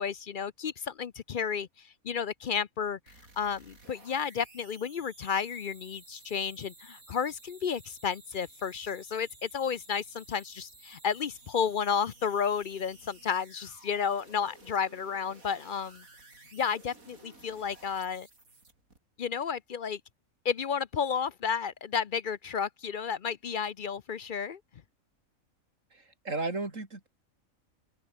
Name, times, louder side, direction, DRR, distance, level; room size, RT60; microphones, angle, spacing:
voice 1, 0.0-3.0 3.4-16.0 16.5-18.3 19.2-20.0 20.4-24.6, left 7 dB, 50° left, 0.6 m, -32 dB
sound 1, 3.1-19.0, right 3 dB, 85° right, 5.2 m, -55 dB
voice 2, 25.9-27.1, right 3 dB, 65° right, 4.4 m, -34 dB
open air
omnidirectional pair, 1.4 m